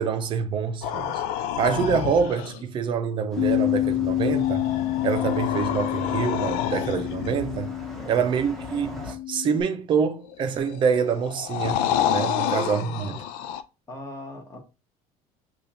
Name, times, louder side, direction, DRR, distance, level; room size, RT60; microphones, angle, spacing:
voice 1, 0.0-4.6 5.0-7.7 8.1-13.2, right 6 dB, 35° right, 0.5 m, -26 dB
sound 1, 0.8-2.6 4.2-7.4 10.2-13.6, left 10 dB, 85° left, 0.4 m, -29 dB
sound 2, 3.3-9.1, left 1 dB, ahead, 0.9 m, -40 dB
Bass guitar, 3.4-9.6, left 14 dB, 45° left, 1.0 m, -28 dB
voice 2, 8.0-8.3 12.4-13.3 13.9-14.6, left 1 dB, 20° left, 1.1 m, -40 dB
6.7 x 2.4 x 2.8 m
cardioid pair, 170°, 15 cm